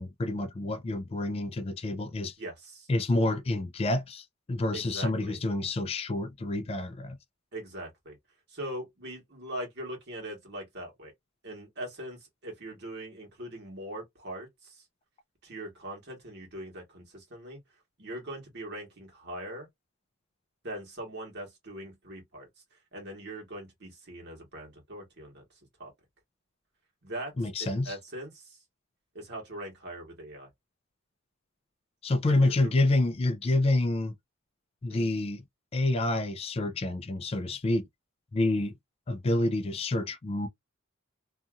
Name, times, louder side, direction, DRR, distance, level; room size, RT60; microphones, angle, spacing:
voice 1, 0.0-2.4 2.9-7.2 27.4-28.0 32.0-34.1 34.8-35.4 35.7-37.9 38.3-38.7 39.1-40.5, left 2 dB, 30° left, 0.3 m, -28 dB
voice 2, 2.4-2.9 4.7-5.4 7.5-8.2 8.5-11.1 11.4-14.8 15.4-17.6 18.0-19.7 20.6-25.4 25.8-25.9 27.0-28.6 29.1-30.5 32.4-32.7 34.9-35.1, right 1 dB, 55° right, 1.4 m, -41 dB
2.7 x 2.5 x 2.3 m
head